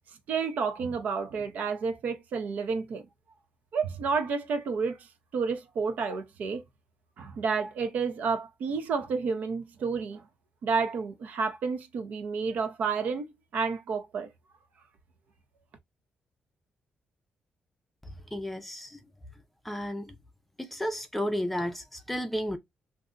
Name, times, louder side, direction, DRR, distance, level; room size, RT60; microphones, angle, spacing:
voice 1, 0.3-3.1 3.7-5.1 5.3-6.6 7.2-10.2 10.6-13.3 13.5-14.3, right 5 dB, 70° right, 0.7 m, -30 dB
voice 2, 18.3-19.0 19.6-20.2 20.6-22.6, equal, 5° left, 0.5 m, -32 dB
2.6 x 2.2 x 3.7 m
cardioid pair, 145°, 3 cm